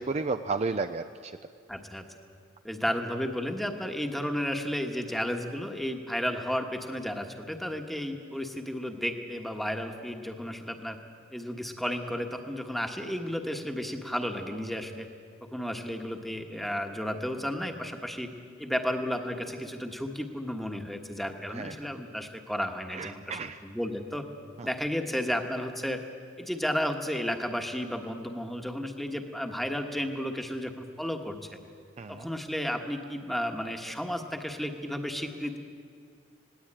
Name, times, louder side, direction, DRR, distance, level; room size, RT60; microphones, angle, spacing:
voice 1, 0.0-1.4 21.5-21.7 22.9-23.6 24.6-24.7 32.0-32.3, right 4 dB, 35° right, 8 dB, 0.5 m, -33 dB
voice 2, 1.7-2.0 2.6-11.0 11.3-15.1 15.5-18.3 18.6-24.2 24.6-26.0 26.4-31.6 32.1-35.6, equal, ahead, 4 dB, 1.3 m, -33 dB
20.0 x 18.0 x 8.9 m, 2.2 s
head